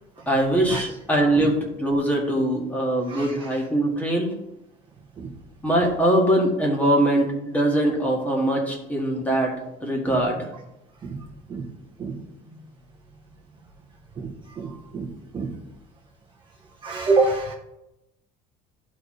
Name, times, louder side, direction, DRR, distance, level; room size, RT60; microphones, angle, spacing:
voice 1, 0.3-4.3 5.6-9.5 9.8-10.5, right 1 dB, 10° left, -1 dB, 1.8 m, -22 dB
voice 2, 14.2-15.5 16.8-17.5, right 3 dB, 25° right, -1 dB, 0.9 m, -27 dB
12.0 x 4.1 x 3.2 m, 0.88 s
cardioid pair, 140°, 19 cm